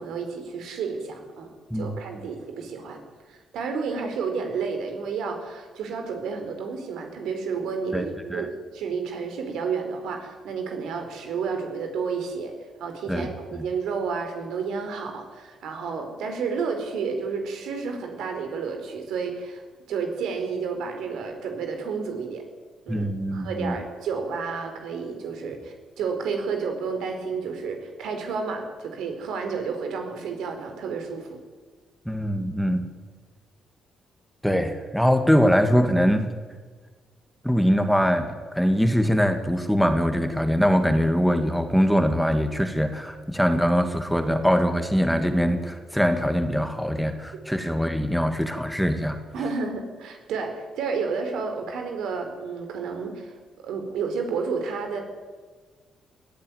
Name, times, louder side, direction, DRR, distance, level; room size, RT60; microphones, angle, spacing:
voice 1, 0.0-3.0 3.3-12.5 12.8-19.6 19.9-22.4 22.9-31.4 49.3-55.0, right 5 dB, 80° right, 5 dB, 4.4 m, -31 dB
voice 2, 22.9-23.8 32.1-32.9 34.4-36.3 37.4-49.2, equal, ahead, 6 dB, 2.0 m, -22 dB
22.0 x 15.0 x 9.4 m, 1.4 s
cardioid pair, 110°, 0 cm